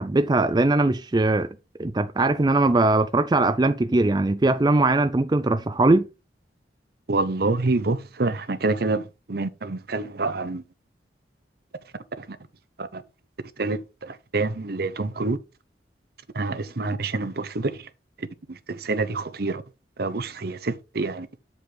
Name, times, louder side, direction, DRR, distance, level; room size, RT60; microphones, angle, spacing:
voice 1, 0.0-1.5 1.8-6.1, right 2 dB, 25° right, 0.4 m, -20 dB
voice 2, 7.1-9.0 9.3-10.6 12.2-12.4 12.8-13.0 13.6-15.4 16.3-17.8 18.7-19.6 20.0-21.4, right 3 dB, 60° right, 0.8 m, -27 dB
8.6 x 5.2 x 3.9 m
head